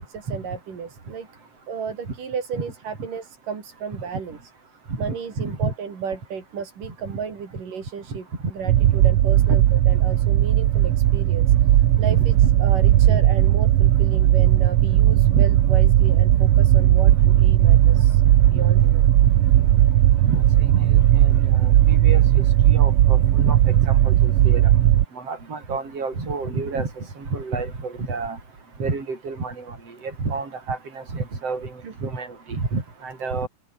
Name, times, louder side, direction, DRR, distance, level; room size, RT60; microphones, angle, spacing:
voice 1, 0.1-1.3 1.7-4.4 5.0-11.7 12.0-19.1 31.8-31.9, right 6 dB, 85° right, 5.4 m, -34 dB
voice 2, 5.1-5.7 8.1-8.2 9.4-9.6 12.1-12.2 13.1-13.5 15.3-15.4 18.5-18.6 20.3-24.7 25.1-28.4 28.8-33.5, right 4 dB, 50° right, 7.2 m, -30 dB
sound 1, 8.7-25.0, right 12 dB, 65° right, 1.5 m, -16 dB
omnidirectional pair, 3.7 m